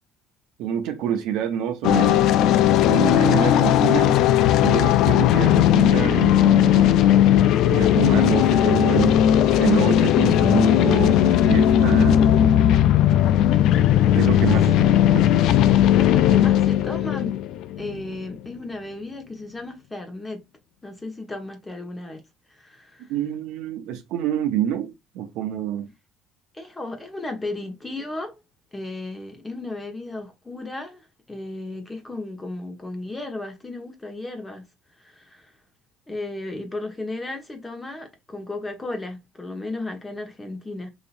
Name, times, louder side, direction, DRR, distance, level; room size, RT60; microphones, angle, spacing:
voice 1, 0.6-2.2 2.9-4.2 4.6-9.2 9.6-12.2 14.1-15.2 23.1-25.9, right 10 dB, 80° right, 0.7 m, -27 dB
sound 1, 1.8-18.2, left 11 dB, 70° left, 0.3 m, -17 dB
voice 2, 15.7-17.4 17.8-20.4 20.8-22.2 22.5-23.1 26.5-28.4 28.7-34.6 35.0-35.5 36.1-40.9, left 2 dB, 15° left, 1.1 m, -34 dB
4.1 x 2.8 x 2.5 m
cardioid pair, 95°, 0 cm